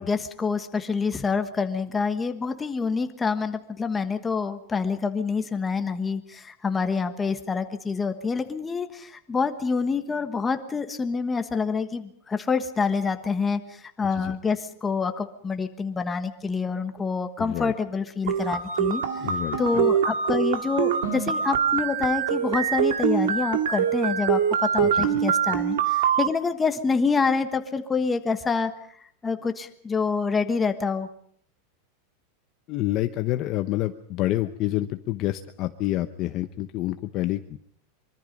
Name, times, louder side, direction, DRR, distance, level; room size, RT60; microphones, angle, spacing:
voice 1, 0.0-19.3 19.6-24.4 24.7-28.7 29.2-31.1, left 5 dB, 10° left, 8 dB, 1.4 m, -27 dB
voice 2, 17.4-17.7 19.2-19.8 24.8-25.1 32.7-37.6, left 15 dB, 30° left, 9 dB, 0.8 m, -28 dB
sound 1, 18.3-26.3, right 8 dB, 90° right, 2.0 m, -24 dB
24.5 x 24.0 x 5.3 m, 0.62 s
supercardioid pair, 175°, 0 cm